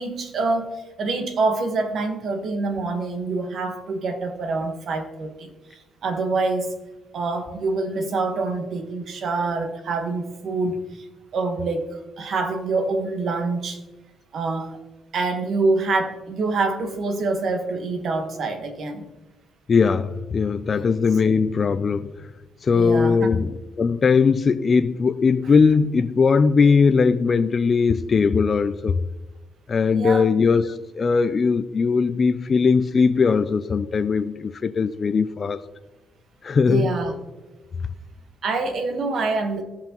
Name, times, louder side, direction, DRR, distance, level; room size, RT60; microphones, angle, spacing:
voice 1, 0.0-5.5 6.0-6.8 7.1-10.8 11.3-13.8 14.3-14.8 15.1-19.1 20.7-20.9 22.7-23.2 29.9-30.2 36.7-37.2 38.4-39.6, right 3 dB, 60° right, 6 dB, 1.3 m, -26 dB
voice 2, 19.7-22.1 22.6-23.5 23.8-29.0 29.7-35.6 36.4-36.9, left 5 dB, 40° left, 10 dB, 0.4 m, -19 dB
16.0 x 5.8 x 3.0 m, 1.1 s
cardioid pair, 90°, 0 cm